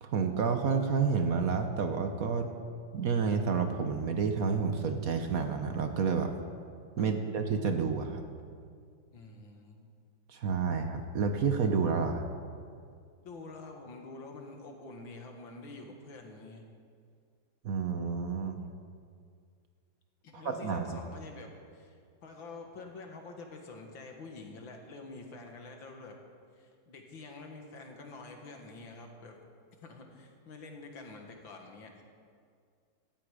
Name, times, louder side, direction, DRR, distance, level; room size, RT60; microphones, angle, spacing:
voice 1, 0.0-2.5 2.9-6.3 7.0-8.2 10.3-12.3 17.6-18.6 20.3-20.9, right 5 dB, 55° right, 6 dB, 1.2 m, -29 dB
voice 2, 9.1-9.9 13.2-16.6 20.2-21.9 22.2-26.2 26.6-29.4 29.8-32.0, left 3 dB, 85° left, 3 dB, 2.4 m, -47 dB
17.0 x 13.5 x 5.0 m, 2.2 s
omnidirectional pair, 2.1 m